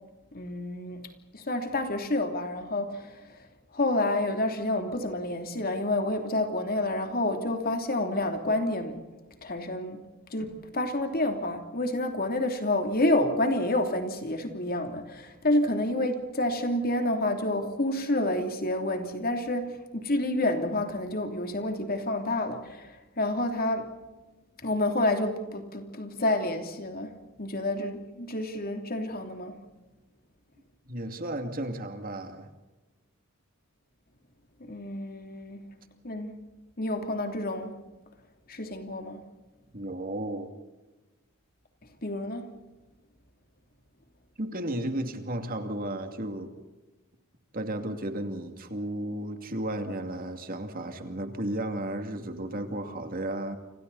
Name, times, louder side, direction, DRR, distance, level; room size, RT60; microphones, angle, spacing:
voice 1, 0.3-1.0 1.3-3.4 3.7-9.0 9.4-10.0 10.3-23.9 24.6-29.6 34.6-35.7 36.0-36.4 36.8-37.7 38.5-39.2 42.0-42.5, left 1 dB, 40° left, 3.1 m, -29 dB
voice 2, 30.9-32.5 39.7-40.5 44.4-46.5 47.5-53.6, right 1 dB, 40° right, 2.6 m, -33 dB
30.0 x 27.5 x 4.2 m
head